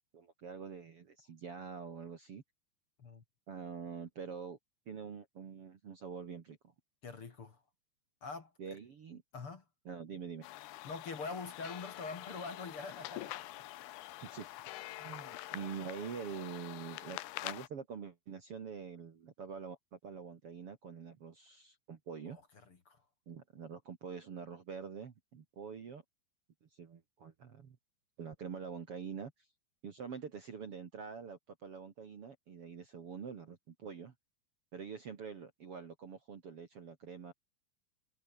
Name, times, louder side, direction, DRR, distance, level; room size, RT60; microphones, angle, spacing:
voice 1, 0.1-2.4 3.5-4.6 4.9-6.7 8.6-9.2 9.9-10.5 14.2-14.7 15.0-22.4 23.3-26.0 26.6-27.8 28.2-29.3 29.8-34.1 34.7-37.3, right 6 dB, 45° right, 2.3 m, -45 dB
voice 2, 7.0-7.6 8.2-8.5 9.3-9.6 10.8-13.3 22.3-22.4 22.7-23.0, left 4 dB, 40° left, 2.9 m, -44 dB
sound 1, 10.4-17.7, left 16 dB, 85° left, 3.0 m, -46 dB
omnidirectional pair, 4.5 m